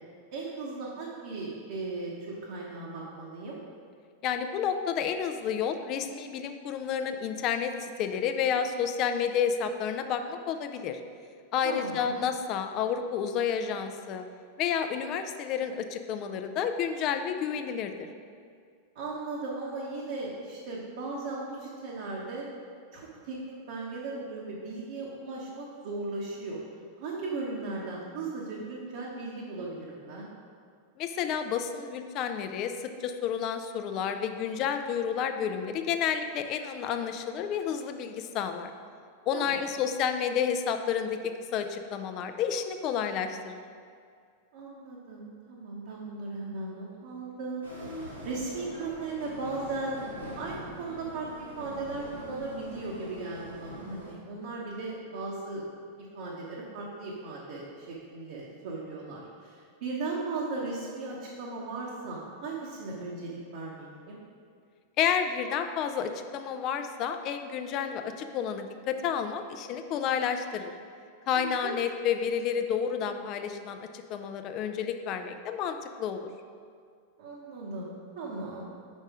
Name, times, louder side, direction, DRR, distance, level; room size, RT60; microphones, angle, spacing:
voice 1, 0.3-3.6 11.6-12.2 18.9-22.5 22.9-26.6 27.0-30.3 39.3-39.5 44.5-55.6 56.1-64.2 71.4-71.8 77.2-78.7, right 3 dB, 55° right, -5 dB, 1.0 m, -37 dB
voice 2, 4.2-11.0 11.5-14.2 14.6-18.1 31.0-38.7 39.3-43.6 65.0-70.7 71.3-76.3, left 7 dB, 40° left, 7 dB, 0.5 m, -30 dB
sound 1, 47.6-54.1, left 1 dB, 85° right, 1.7 m, -43 dB
5.3 x 5.3 x 4.8 m, 2.2 s
figure-of-eight pair, 90°, 0 cm